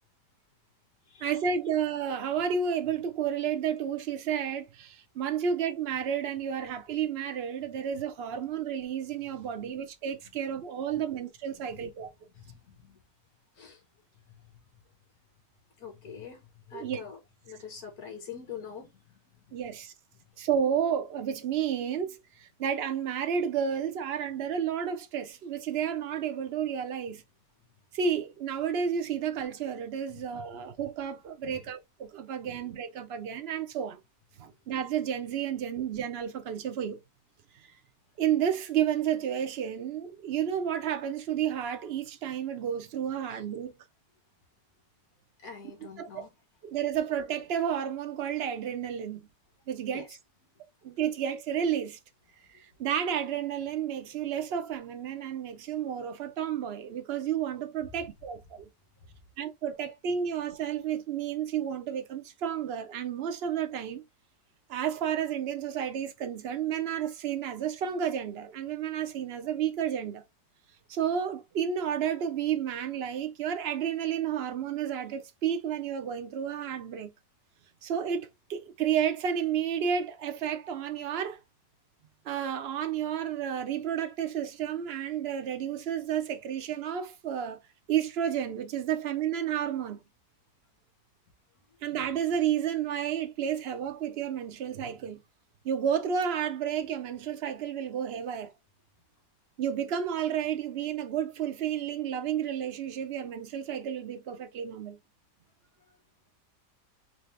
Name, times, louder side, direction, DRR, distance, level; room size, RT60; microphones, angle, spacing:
voice 1, 1.2-12.1 16.7-17.0 19.5-19.9 20.4-27.2 27.9-34.0 34.4-37.0 38.2-43.7 46.0-46.2 46.6-49.3 49.7-50.1 50.8-52.0 52.5-58.7 59.4-64.0 64.7-70.2 70.9-77.1 77.8-81.4 82.2-87.6 87.9-90.0 91.8-95.2 95.6-98.5 99.6-105.0, right 8 dB, 55° right, 0.7 m, -31 dB
voice 2, 11.7-12.1 12.3-13.0 13.6-13.8 14.3-14.4 15.8-17.2 17.4-19.2 30.1-30.2 31.4-31.6 32.4-32.6 34.4-34.5 43.3-43.4 45.4-46.3 49.9-50.1, left 7 dB, 60° left, 1.8 m, -45 dB
4.1 x 2.8 x 3.2 m
omnidirectional pair, 1.8 m